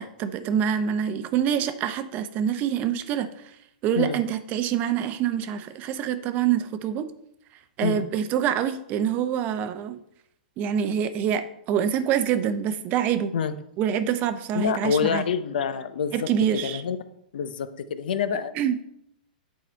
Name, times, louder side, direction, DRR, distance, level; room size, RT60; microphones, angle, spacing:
voice 1, 0.0-3.3 3.8-7.1 7.8-10.0 10.6-13.3 13.8-15.2 16.1-16.8 18.5-18.8, right 9 dB, 35° right, 11 dB, 0.7 m, -26 dB
voice 2, 14.5-16.1 16.6-17.0 17.3-18.5, left 7 dB, 75° left, 12 dB, 0.7 m, -26 dB
8.3 x 4.8 x 4.4 m, 0.75 s
hypercardioid pair, 130°, 5 cm